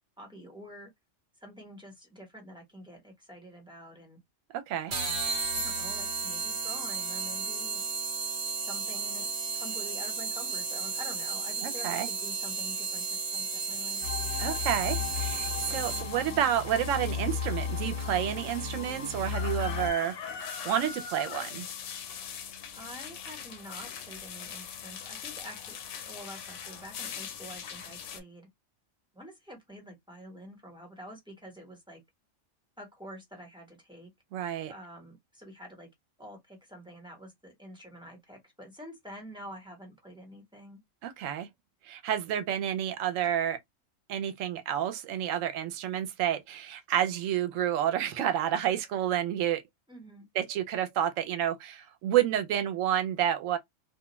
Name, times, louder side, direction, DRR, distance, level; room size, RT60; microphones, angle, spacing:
voice 1, 0.2-0.9 1.4-4.2 4.9-5.2 5.6-7.8 8.7-14.0 22.7-25.8 26.0-28.5 29.1-32.0 32.8-34.1 34.7-35.9 36.2-40.8 49.9-50.3, equal, 5° right, 0.9 m, -47 dB
voice 2, 4.5-4.9 11.6-12.1 14.4-20.2 20.6-21.7 34.3-34.7 41.0-41.5 41.9-43.6 44.1-49.6 50.4-53.6, right 10 dB, 90° right, 1.0 m, -30 dB
sound 1, 4.9-16.3, right 4 dB, 65° right, 1.2 m, -33 dB
Watering the Plants with water pump sound, 13.7-28.2, left 7 dB, 75° left, 0.9 m, -42 dB
sound 2, 14.0-19.9, left 6 dB, 20° left, 0.6 m, -34 dB
2.4 x 2.2 x 3.0 m
omnidirectional pair, 1.3 m